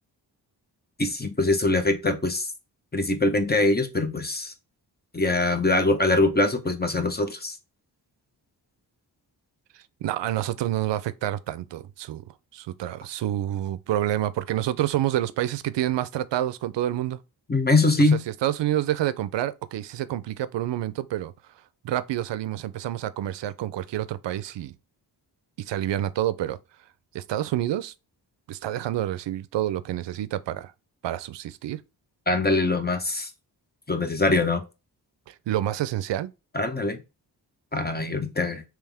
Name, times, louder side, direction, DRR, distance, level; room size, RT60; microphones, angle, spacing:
voice 1, 1.0-2.5 2.9-4.5 5.1-7.6 17.5-18.2 32.3-33.3 33.9-34.6 36.5-37.0 37.7-38.6, left 2 dB, 20° left, 0.8 m, -23 dB
voice 2, 10.0-12.2 12.5-17.2 18.0-21.3 21.8-24.7 25.6-26.6 27.1-27.9 28.5-30.7 31.0-31.8 35.3-36.3, right 12 dB, 75° right, 0.5 m, -28 dB
3.4 x 3.0 x 3.4 m
cardioid pair, 55°, 43 cm